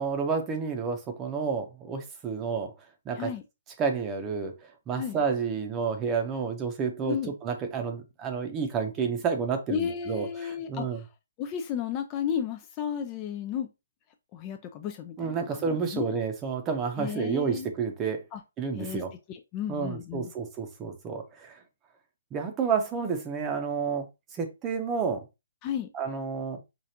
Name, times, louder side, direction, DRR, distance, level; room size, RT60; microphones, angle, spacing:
voice 1, 0.0-2.7 3.1-3.3 3.8-4.5 4.9-11.0 15.2-18.2 18.6-19.1 19.7-21.6 22.3-24.1 24.3-25.2 25.9-26.6, right 5 dB, 15° right, 0.8 m, -30 dB
voice 2, 7.0-7.3 9.7-11.1 11.4-13.7 14.3-16.2 17.0-17.7 18.3-18.4 18.8-19.0 19.3-20.3 25.6-25.9, left 8 dB, 25° left, 0.5 m, -33 dB
4.9 x 2.4 x 2.8 m
hypercardioid pair, 155°, 0 cm